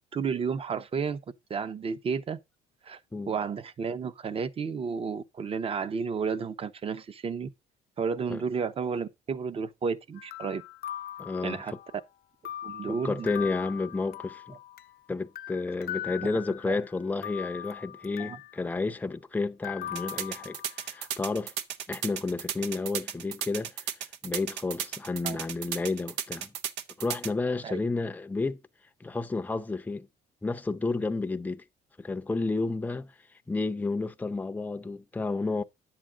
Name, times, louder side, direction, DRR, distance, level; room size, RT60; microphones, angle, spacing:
voice 1, 0.1-1.2 1.5-2.4 2.8-3.0 3.3-7.5 8.0-10.6 11.4-11.7 12.6-13.3 16.7-16.8 18.2-18.4 25.2-25.4 27.6-27.8, right 5 dB, 35° right, 0.7 m, -32 dB
sound 1, 10.2-12.0 12.4-15.0 15.4-16.8 17.2-18.6 19.6-21.1, left 11 dB, 65° left, 0.6 m, -40 dB
voice 2, 11.2-11.8 12.9-14.6 15.1-21.5 21.9-23.9 24.2-26.5 27.0-28.6 29.0-30.1 30.4-31.6 32.0-33.1 33.5-35.6, left 3 dB, 10° left, 0.6 m, -31 dB
sound 2, 20.0-27.3, right 9 dB, 90° right, 0.7 m, -34 dB
10.0 x 7.5 x 3.8 m
cardioid pair, 110°, 17 cm